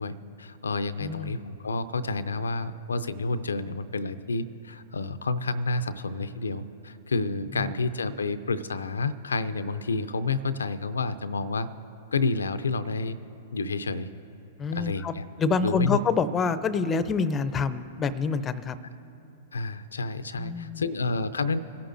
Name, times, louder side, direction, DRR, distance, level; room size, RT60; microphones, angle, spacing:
voice 1, 0.0-11.7 12.1-13.2 13.5-14.1 14.7-15.2 15.6-16.0 19.5-21.6, left 3 dB, 85° left, 13 dB, 0.5 m, -29 dB
voice 2, 1.0-1.4 7.5-7.7 14.6-18.8 20.3-20.9, left 5 dB, 20° left, 14 dB, 0.5 m, -27 dB
23.0 x 11.0 x 2.6 m, 2.8 s
hypercardioid pair, 115°, 0 cm